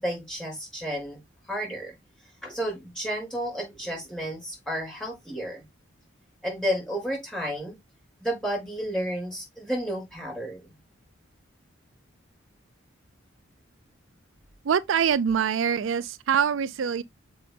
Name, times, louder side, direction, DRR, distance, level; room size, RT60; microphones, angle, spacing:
voice 1, 0.0-1.2 1.5-1.9 2.4-5.6 6.4-7.7 8.2-10.7, equal, 5° left, 5.2 m, -31 dB
voice 2, 14.6-17.0, right 7 dB, 70° right, 0.4 m, -24 dB
6.7 x 5.3 x 3.3 m
head